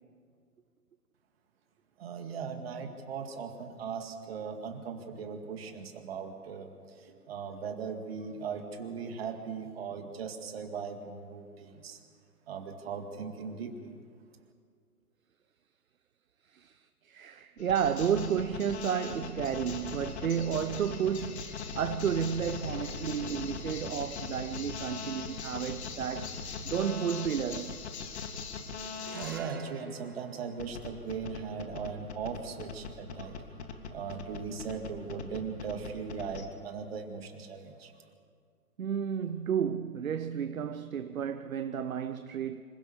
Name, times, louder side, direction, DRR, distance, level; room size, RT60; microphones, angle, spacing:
voice 1, 2.0-12.0 12.5-13.9 29.1-33.4 33.9-37.9, right 6 dB, 40° right, 2.1 m, -39 dB
voice 2, 17.0-26.4 26.6-27.7 38.8-42.6, right 8 dB, 60° right, 0.8 m, -32 dB
sound 1, 17.6-29.4 30.6-36.5, left 5 dB, 45° left, 2.0 m, -40 dB
sound 2, 21.1-26.9, left 2 dB, 90° left, 4.9 m, -48 dB
sound 3, 28.9-35.4, right 4 dB, 15° right, 0.5 m, -53 dB
26.0 x 16.5 x 6.8 m
figure-of-eight pair, 135°, 47 cm